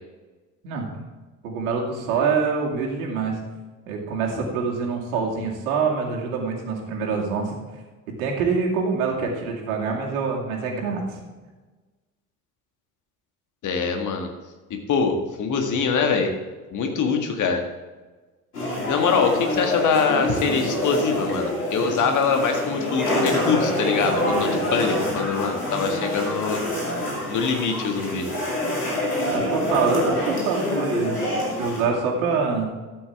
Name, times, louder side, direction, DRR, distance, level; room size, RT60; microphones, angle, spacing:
voice 1, 1.4-3.4 3.9-7.6 8.2-11.0 29.3-32.7, right 5 dB, 65° right, -1 dB, 2.4 m, -25 dB
voice 2, 13.6-14.3 14.7-16.3 16.7-17.6 18.9-26.6 27.3-28.3, left 5 dB, 40° left, 4 dB, 1.8 m, -23 dB
sound 1, 18.5-31.8, left 1 dB, 80° left, 2.6 m, -26 dB
13.0 x 9.2 x 3.5 m, 1.2 s
figure-of-eight pair, 60°, 45 cm